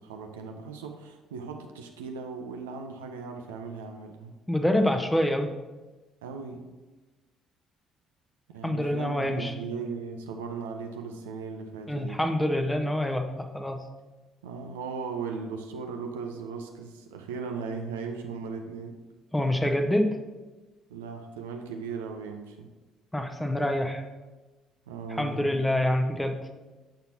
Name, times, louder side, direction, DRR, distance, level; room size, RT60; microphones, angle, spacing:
voice 1, 0.0-4.4 6.2-6.6 8.5-12.2 14.4-19.0 20.9-22.7 24.9-25.5, right 5 dB, 70° right, 4 dB, 0.5 m, -37 dB
voice 2, 4.5-5.5 8.6-9.5 11.9-13.8 19.3-20.2 23.1-24.0 25.1-26.4, left 1 dB, 10° left, 5 dB, 0.7 m, -26 dB
6.6 x 5.7 x 2.9 m, 1.2 s
figure-of-eight pair, 50°, 0 cm